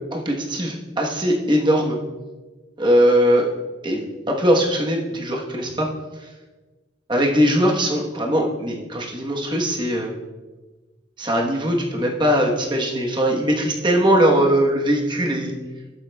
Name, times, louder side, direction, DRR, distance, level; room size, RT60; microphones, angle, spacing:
voice 1, 0.1-2.0 2.8-3.4 3.8-5.9 6.2-6.3 7.1-10.1 11.2-15.5, equal, 25° right, 0 dB, 1.1 m, -20 dB
13.5 x 7.6 x 2.3 m, 1.2 s
head